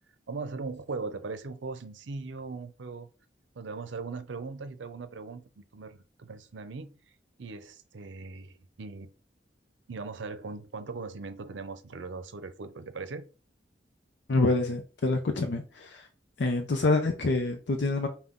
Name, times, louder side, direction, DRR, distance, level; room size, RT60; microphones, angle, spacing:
voice 1, 0.3-3.1 3.6-6.9 7.4-9.1 9.9-13.3, right 4 dB, 90° right, 0.6 m, -39 dB
voice 2, 14.3-16.1 16.4-18.1, left 3 dB, 75° left, 0.6 m, -26 dB
5.7 x 2.3 x 3.7 m
head